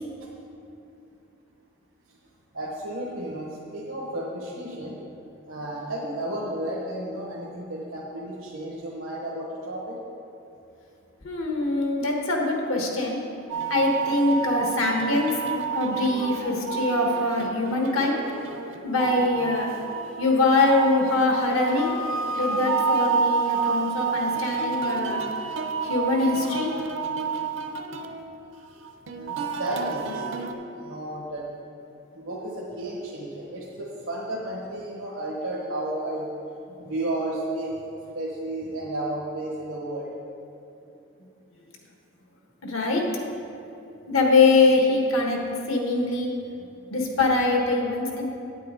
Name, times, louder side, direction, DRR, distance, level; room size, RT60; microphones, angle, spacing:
voice 1, 2.5-5.0 5.4-10.0 29.1-30.2 30.7-31.4 32.1-36.3 36.8-40.1, right 1 dB, 90° right, -5 dB, 1.2 m, -32 dB
voice 2, 11.2-13.2 13.7-15.3 15.7-18.2 18.8-19.7 20.2-22.0 22.3-25.2 25.8-26.7 42.6-43.0 44.1-45.4 45.7-46.3 46.9-48.2, left 2 dB, 85° left, 1 dB, 1.3 m, -23 dB
sound 1, 13.5-30.5, right 5 dB, 65° right, 0.6 m, -29 dB
9.1 x 8.5 x 3.7 m, 2.7 s
head